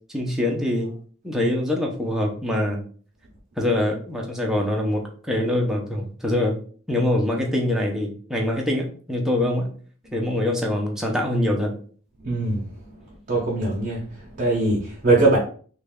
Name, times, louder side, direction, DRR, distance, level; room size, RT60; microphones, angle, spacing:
voice 1, 0.1-0.9 1.2-2.8 3.6-6.6 6.9-9.7 10.1-11.7, left 1 dB, ahead, -1 dB, 0.6 m, -24 dB
voice 2, 12.2-12.6 13.3-14.0 14.4-15.4, right 2 dB, 40° right, -4 dB, 0.7 m, -21 dB
3.2 x 2.3 x 3.5 m, 0.44 s
head